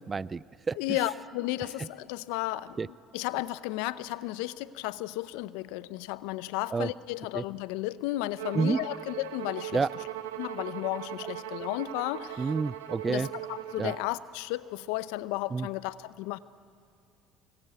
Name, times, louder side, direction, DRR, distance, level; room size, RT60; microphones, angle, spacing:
voice 1, 0.1-0.8 2.8-2.9 6.7-6.9 7.3-7.4 8.5-8.8 9.7-9.9 12.4-13.3 13.8-13.9 15.5-15.7, right 4 dB, 30° right, 20 dB, 0.5 m, -29 dB
voice 2, 0.7-10.0 10.4-12.5 13.0-16.4, left 16 dB, 75° left, 16 dB, 0.7 m, -34 dB
Bowed string instrument, 8.4-14.1, right 12 dB, 85° right, 1.4 m, -39 dB
25.0 x 21.0 x 9.4 m, 2.6 s
hypercardioid pair, 65°, 0 cm